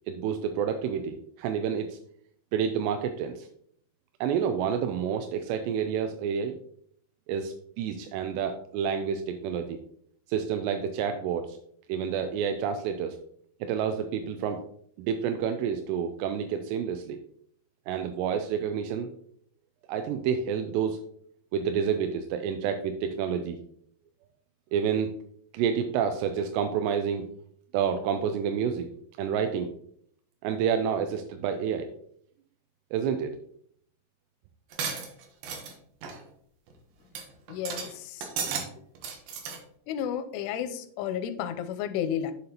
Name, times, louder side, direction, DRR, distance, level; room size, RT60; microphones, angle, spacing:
voice 1, 0.1-2.0 2.5-3.5 4.2-6.6 7.3-9.8 10.3-11.6 11.9-13.2 13.6-14.6 15.0-17.2 17.9-19.1 19.9-21.0 21.5-23.6 24.7-25.1 25.5-27.2 27.7-28.9 29.2-29.7 30.4-31.9 32.9-33.4, right 7 dB, 85° right, 6 dB, 2.6 m, -29 dB
sound 1, 34.7-35.7 36.0-36.2 36.7-36.8 37.2-37.3 37.5-37.9 38.2-38.7 39.0-39.6, right 6 dB, 70° right, 2.6 m, -34 dB
voice 2, 37.5-38.3 39.9-42.3, left 9 dB, 80° left, 9 dB, 2.6 m, -32 dB
7.6 x 6.8 x 2.9 m, 0.65 s
omnidirectional pair, 4.9 m